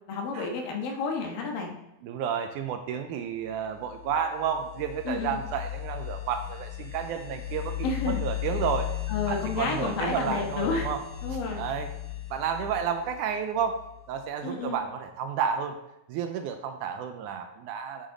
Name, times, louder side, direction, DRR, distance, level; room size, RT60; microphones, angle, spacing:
voice 1, 0.1-1.8 5.1-5.4 7.8-8.2 9.1-10.9 11.2-11.6 14.4-14.8, left 4 dB, 90° left, 1 dB, 3.1 m, -30 dB
voice 2, 2.0-8.9 9.3-11.0 11.3-11.9 12.3-13.8 14.1-15.8 16.1-18.1, right 7 dB, 80° right, 6 dB, 1.9 m, -31 dB
sound 1, 3.7-14.2, left 14 dB, 65° left, 1.4 m, -36 dB
8.3 x 6.1 x 3.8 m, 0.88 s
omnidirectional pair, 3.9 m